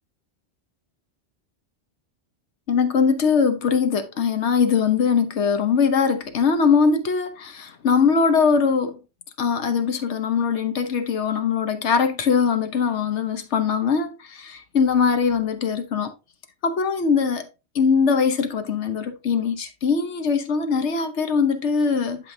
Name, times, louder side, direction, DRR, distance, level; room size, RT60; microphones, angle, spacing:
voice 1, 2.7-9.0 9.4-16.1 16.6-17.5 17.7-22.3, left 5 dB, 90° left, 1.2 m, -21 dB
11.0 x 5.1 x 2.7 m
omnidirectional pair, 1.1 m